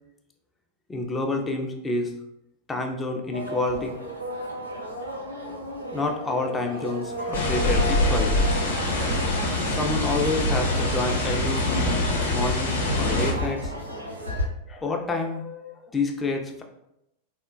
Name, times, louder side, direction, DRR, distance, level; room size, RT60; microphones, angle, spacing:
voice 1, 0.9-2.1 2.7-3.9 5.9-8.9 9.6-11.7 12.3-13.7 14.7-16.6, left 3 dB, 15° left, 3 dB, 0.4 m, -28 dB
sound 1, 3.3-14.4, equal, 80° right, 0.5 m, -34 dB
sound 2, 7.3-13.3, left 1 dB, 70° left, 0.6 m, -24 dB
3.5 x 2.1 x 2.3 m, 0.84 s
figure-of-eight pair, 90°, 0 cm